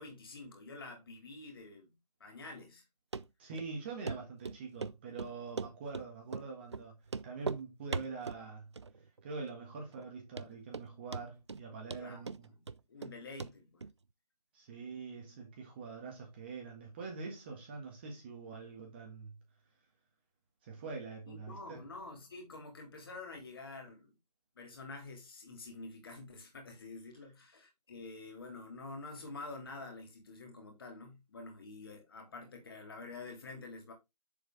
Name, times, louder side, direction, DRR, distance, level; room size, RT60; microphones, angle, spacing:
voice 1, 0.0-1.9 2.2-2.8 12.0-12.6 12.9-13.8 21.3-24.1 24.5-33.9, left 3 dB, 35° left, 3.0 m, -48 dB
Run, 3.1-3.2 3.6-3.7 4.1-4.2 4.4-4.9 5.2-6.1 6.3-6.5 6.7-6.8 7.1-7.6 7.9-8.4 8.8-9.2 9.5-9.6 10.0-10.1 10.4-10.9 11.1-11.6 11.9-13.1 13.4-13.5 13.8-13.9, right 4 dB, 40° right, 0.5 m, -39 dB
voice 2, 3.4-7.0 7.2-8.7 9.2-12.5 14.5-19.3 20.6-21.8, right 4 dB, 15° right, 1.4 m, -44 dB
7.1 x 6.9 x 3.7 m
figure-of-eight pair, 160°, 21 cm